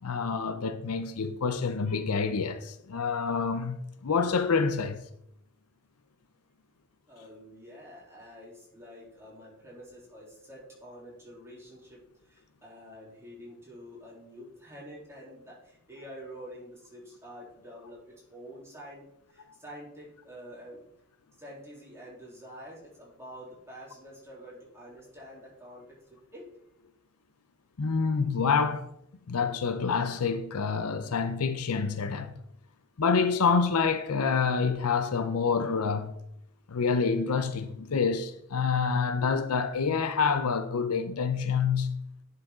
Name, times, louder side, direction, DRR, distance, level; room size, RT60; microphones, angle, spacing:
voice 1, 0.0-5.0 27.8-28.9 29.3-32.3 33.0-36.2 36.7-42.0, left 5 dB, 75° left, 0.6 m, -27 dB
voice 2, 7.1-20.8 21.4-26.5, equal, 10° right, 3.5 m, -47 dB
10.5 x 5.7 x 3.8 m
head